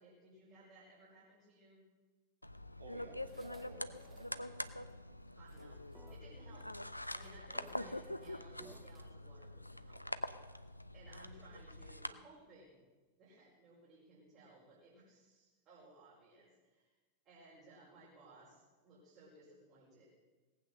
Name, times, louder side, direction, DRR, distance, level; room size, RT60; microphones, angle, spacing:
voice 1, 0.0-1.8 3.6-3.7 5.3-5.8 6.1-6.7 7.1-10.0 10.9-12.8 13.2-17.0 17.2-20.0, right 2 dB, 35° right, -7 dB, 4.8 m, -60 dB
sound 1, 2.4-12.1, left 1 dB, 85° left, 0.5 m, -45 dB
voice 2, 2.8-4.9, right 3 dB, 75° right, 0 dB, 3.1 m, -56 dB
sound 2, 3.2-4.3 4.7-4.8 5.3-5.7 5.9-6.3 7.0-9.1, right 4 dB, 20° right, 0.9 m, -61 dB
18.5 x 8.6 x 6.6 m, 1.3 s
figure-of-eight pair, 90°, 0 cm